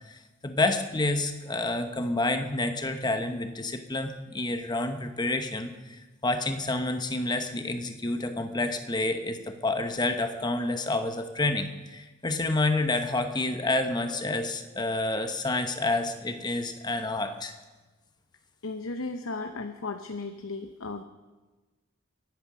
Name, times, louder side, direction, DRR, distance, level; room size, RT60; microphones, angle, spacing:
voice 1, 0.1-6.0 6.2-17.5, left 2 dB, 20° left, 7 dB, 1.0 m, -29 dB
voice 2, 18.6-21.0, left 3 dB, 90° left, 7 dB, 0.8 m, -35 dB
23.0 x 9.3 x 6.1 m, 1.3 s
head